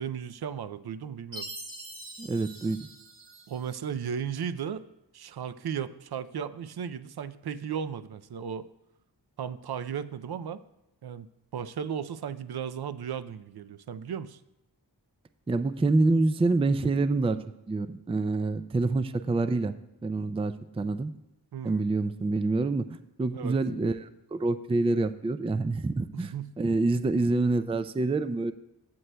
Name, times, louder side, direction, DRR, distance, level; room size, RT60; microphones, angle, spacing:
voice 1, 0.0-1.5 3.5-4.9 5.1-8.7 9.4-10.6 11.0-11.3 11.5-14.4 21.5-21.8 23.3-23.6 26.1-26.5, right 8 dB, 65° right, 12 dB, 0.5 m, -35 dB
Chime, 1.3-3.8, right 1 dB, 85° right, 1.4 m, -43 dB
voice 2, 2.2-2.8 15.5-17.4 17.7-19.8 20.0-21.1 21.6-22.8 23.2-28.5, right 3 dB, 15° right, 11 dB, 0.3 m, -26 dB
16.0 x 7.4 x 2.3 m, 0.88 s
wide cardioid pair, 65°, 41 cm